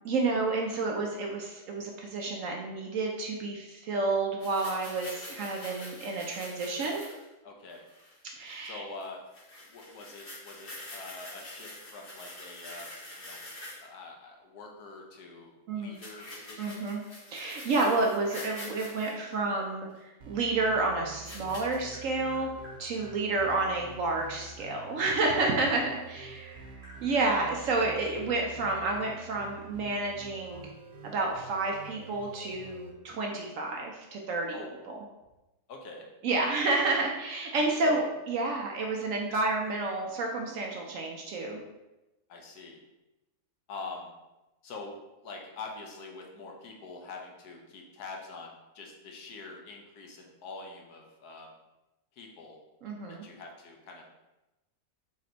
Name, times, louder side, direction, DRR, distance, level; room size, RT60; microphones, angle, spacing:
voice 1, 0.0-7.1 8.4-8.8 15.7-16.0 16.6-17.0 17.3-22.5 22.8-30.6 31.0-34.6 34.9-35.0 36.2-38.0 38.3-41.6 52.8-53.2, right 3 dB, 65° right, 0 dB, 0.9 m, -30 dB
sound 1, 4.4-7.2 7.7-8.2 8.5-8.7 9.0-9.1 9.3-13.9 15.9-19.1 20.0-20.1 21.2-21.8, left 1 dB, 35° left, 1.3 m, -45 dB
voice 2, 7.4-7.8 8.6-9.2 9.6-12.9 13.2-13.4 13.8-16.9 34.5-34.7 35.7-36.0 37.8-38.1 39.3-39.4 42.3-42.8 43.7-44.1 44.6-51.6 52.1-52.6 53.1-54.1, left 3 dB, 75° left, 1 dB, 1.3 m, -44 dB
Tap, 18.6-19.7 21.0-23.1 23.9-26.0 26.3-28.3, left 1 dB, 25° right, 1.5 m, -52 dB
sound 2, 20.2-32.9, right 3 dB, 80° right, 1.4 m, -48 dB
4.2 x 3.2 x 3.8 m, 1.0 s
omnidirectional pair, 1.7 m